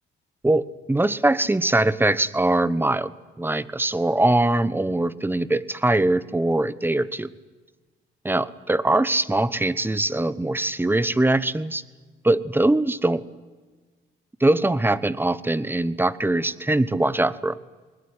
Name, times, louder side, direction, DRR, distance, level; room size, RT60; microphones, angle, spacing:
voice 1, 0.4-3.1 3.4-7.3 8.2-11.8 12.2-13.2 14.4-17.6, right 2 dB, 10° right, 17 dB, 1.1 m, -22 dB
21.0 x 20.5 x 9.7 m, 1.3 s
cardioid pair, 90°, 20 cm